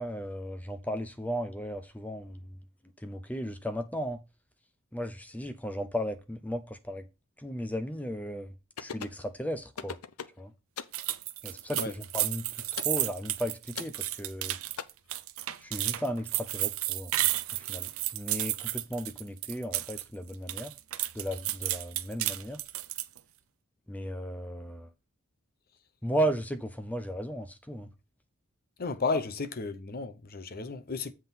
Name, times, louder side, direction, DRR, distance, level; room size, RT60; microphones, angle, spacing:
voice 1, 0.0-2.6 3.0-4.2 4.9-7.1 7.4-10.0 10.4-10.5 11.4-14.6 15.6-17.1 17.7-20.7 21.1-22.6 23.9-24.9 26.0-27.9, equal, 5° left, 0.6 m, -35 dB
sound 1, 8.8-9.2 9.8-10.4 10.8-11.0 11.8-12.0 12.8-13.0 13.8-14.0 14.8-14.9, left 7 dB, 80° left, 0.6 m, -39 dB
sound 2, 10.9-20.0 20.3-23.2, right 15 dB, 70° right, 0.5 m, -32 dB
voice 2, 28.8-31.1, left 4 dB, 45° left, 0.8 m, -33 dB
7.7 x 3.7 x 5.8 m
head